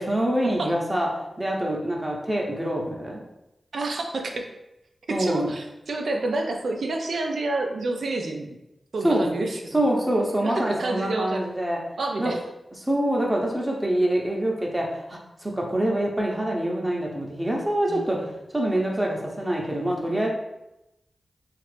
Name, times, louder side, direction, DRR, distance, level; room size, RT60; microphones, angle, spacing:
voice 1, 0.0-3.2 5.1-5.5 9.0-9.3 9.7-11.8 12.2-12.3 12.8-20.3, right 1 dB, 20° right, -2 dB, 0.7 m, -25 dB
voice 2, 3.7-4.5 5.1-8.6 8.9-9.8 10.4-11.4 12.0-12.4 17.9-18.4, right 2 dB, 80° right, 3 dB, 0.4 m, -29 dB
2.9 x 2.4 x 3.3 m, 0.91 s
cardioid pair, 50°, 0 cm